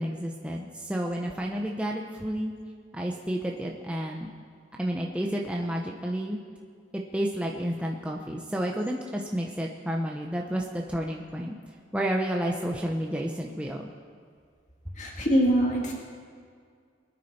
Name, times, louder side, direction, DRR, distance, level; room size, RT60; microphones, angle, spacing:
voice 1, 0.0-2.5 2.9-4.3 4.8-6.4 6.9-11.5 11.9-13.9, equal, 5° right, -1 dB, 0.8 m, -30 dB
voice 2, 15.0-15.9, equal, 40° left, -1 dB, 1.9 m, -23 dB
22.5 x 9.8 x 4.3 m, 2.1 s
head